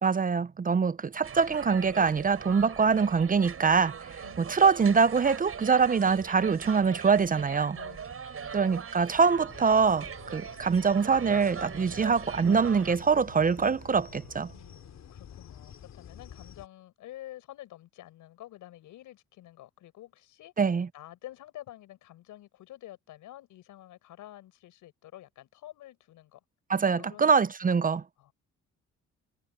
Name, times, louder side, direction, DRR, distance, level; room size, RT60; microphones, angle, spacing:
voice 1, 0.0-7.8 8.5-14.5 20.6-20.9 26.7-28.0, right 5 dB, 30° right, 0.6 m, -24 dB
sound 1, 1.2-13.0, right 7 dB, 45° right, 7.0 m, -41 dB
voice 2, 7.7-8.8 14.5-20.5 20.9-26.4 27.0-27.3 27.7-28.3, left 14 dB, 85° left, 6.7 m, -49 dB
sound 2, 9.5-16.7, left 9 dB, 60° left, 3.7 m, -49 dB
sound 3, 12.3-15.3, right 13 dB, 85° right, 3.9 m, -54 dB
cardioid pair, 90°, 30 cm